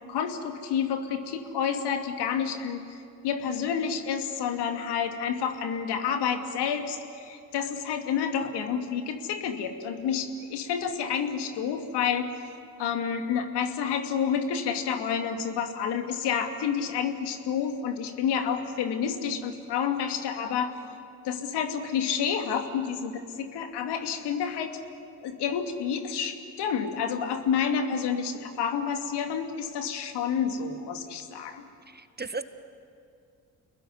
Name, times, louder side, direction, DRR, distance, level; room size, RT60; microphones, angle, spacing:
voice 1, 0.1-2.8 3.2-12.3 12.8-20.7 21.2-24.8 25.2-31.6, left 7 dB, 65° left, 6 dB, 2.5 m, -29 dB
voice 2, 31.9-32.4, right 3 dB, 25° right, 11 dB, 1.7 m, -35 dB
29.5 x 20.5 x 9.8 m, 2.5 s
figure-of-eight pair, 40°, 43 cm